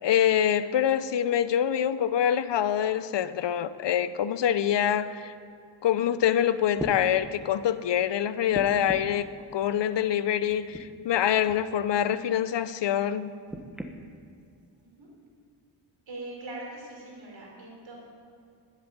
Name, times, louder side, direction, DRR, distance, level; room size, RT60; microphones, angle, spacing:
voice 1, 0.0-5.3 5.8-13.3, left 10 dB, 60° left, 0.7 m, -25 dB
sound 1, 6.2-6.3 6.7-7.0 8.5-9.2 10.5-10.8 11.4-11.6 13.5-13.9 14.8-14.9, equal, ahead, 1.2 m, -37 dB
voice 2, 16.1-18.0, right 2 dB, 65° right, 4.8 m, -41 dB
11.5 x 11.0 x 9.9 m
wide cardioid pair, 105°, 47 cm